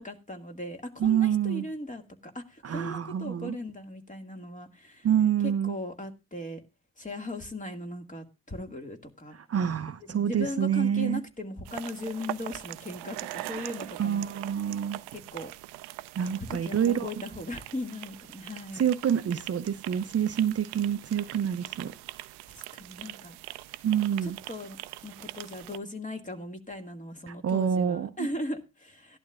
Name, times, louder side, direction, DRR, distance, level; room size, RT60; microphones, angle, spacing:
voice 1, 0.0-5.1 5.4-6.6 7.0-9.4 10.0-14.3 15.1-15.5 16.2-18.9 22.5-23.4 24.2-24.8 25.0-29.2, left 1 dB, 20° left, 2.2 m, -38 dB
voice 2, 1.0-1.6 2.6-3.6 5.0-5.8 9.3-11.2 14.0-15.0 16.2-17.1 18.7-21.9 23.8-24.4 27.3-28.1, right 9 dB, 35° right, 0.7 m, -27 dB
sound 1, 11.7-25.8, right 18 dB, 70° right, 0.6 m, -42 dB
17.0 x 11.5 x 2.5 m
hypercardioid pair, 50°, 41 cm